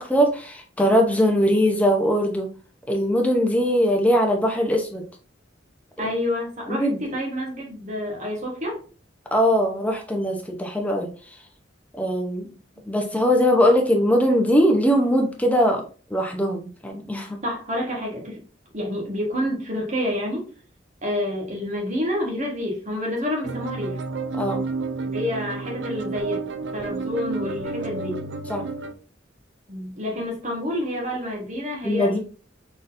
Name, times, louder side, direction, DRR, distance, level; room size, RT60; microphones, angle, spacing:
voice 1, 0.0-2.5 2.9-5.0 6.0-6.1 6.7-7.0 9.3-11.3 11.9-12.5 12.9-15.8 16.1-17.4 24.4-24.6 28.5-28.6 31.8-32.2, equal, 5° left, 1 dB, 0.7 m, -21 dB
voice 2, 6.0-8.8 17.4-18.4 18.7-20.5 21.0-24.0 25.0-28.2 29.7-32.2, left 1 dB, 40° right, -1 dB, 1.4 m, -28 dB
sound 1, 23.4-28.9, right 4 dB, 60° right, 0.4 m, -30 dB
4.0 x 3.8 x 2.6 m, 0.39 s
head